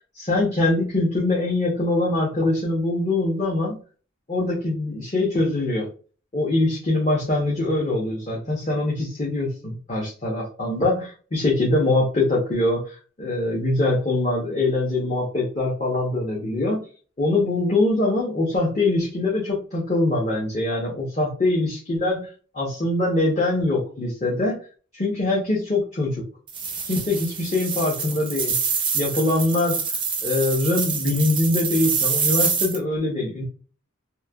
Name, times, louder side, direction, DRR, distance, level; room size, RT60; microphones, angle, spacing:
voice 1, 0.1-3.8 4.3-5.9 6.3-16.8 17.2-24.6 24.9-26.2 26.8-28.6 28.9-29.8 30.2-33.4, left 2 dB, 35° left, -5 dB, 0.7 m, -23 dB
sound 1, 26.5-32.8, right 5 dB, 25° right, 0.4 m, -26 dB
3.0 x 2.1 x 2.2 m, 0.38 s
head